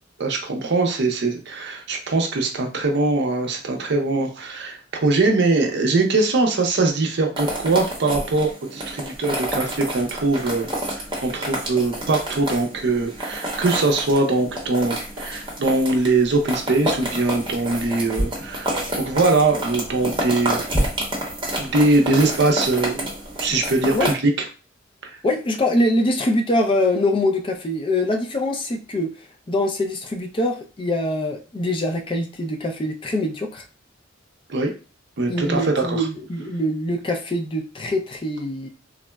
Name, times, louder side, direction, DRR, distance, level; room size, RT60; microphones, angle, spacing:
voice 1, 0.2-20.6 21.6-23.1 23.4-24.3 25.0-25.1 34.5-34.7 35.2-36.1, right 3 dB, 60° right, 0.5 m, -22 dB
sound 1, 7.4-24.1, right 1 dB, 25° right, 0.8 m, -29 dB
voice 2, 25.2-29.1 29.5-33.6 35.3-38.7, left 1 dB, 25° left, 0.3 m, -23 dB
3.6 x 2.0 x 2.2 m
head